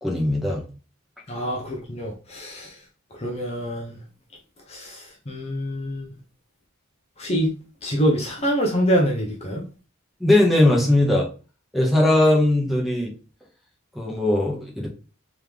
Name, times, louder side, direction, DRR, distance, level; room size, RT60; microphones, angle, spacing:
voice 1, 0.0-0.6 10.2-11.3 11.7-13.1 13.9-14.9, left 1 dB, ahead, 1.0 m, -19 dB
voice 2, 1.3-2.7 3.2-4.0 4.7-6.1 7.2-7.5 7.8-9.6, equal, 30° left, 0.8 m, -25 dB
3.6 x 3.2 x 3.5 m
head